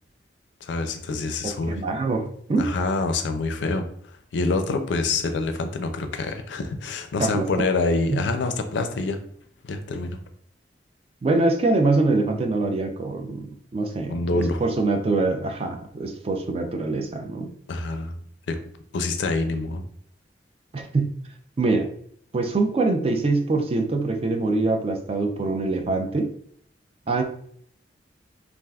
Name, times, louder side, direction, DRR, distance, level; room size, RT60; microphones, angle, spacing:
voice 1, 0.6-1.8 2.6-3.9 4.3-9.2 9.6-10.2 14.1-14.6 17.7-18.1 18.5-18.6 18.9-19.8, left 3 dB, 80° left, 7 dB, 0.4 m, -26 dB
voice 2, 1.7-2.7 7.2-7.7 8.1-8.2 11.2-17.5 20.7-21.1 21.6-21.9 22.3-26.3 27.1-27.2, right 3 dB, 35° right, 5 dB, 0.3 m, -24 dB
3.4 x 2.4 x 2.3 m, 0.63 s
head